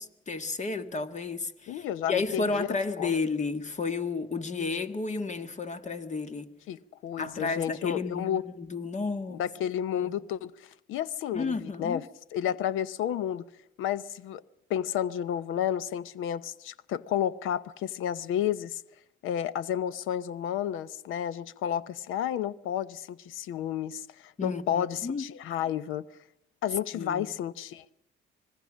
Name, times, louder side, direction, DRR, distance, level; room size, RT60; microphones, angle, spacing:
voice 1, 0.0-6.5 7.2-9.5 9.9-10.1 11.3-12.0 24.4-25.3 26.9-27.3, left 4 dB, 35° left, 1.8 m, -32 dB
voice 2, 1.7-2.7 3.0-3.1 6.7-8.4 9.3-12.1 12.3-13.4 13.8-14.4 14.7-18.8 19.2-26.1 26.6-27.9, left 10 dB, 90° left, 0.8 m, -31 dB
26.0 x 20.0 x 6.3 m
cardioid pair, 90°, 20 cm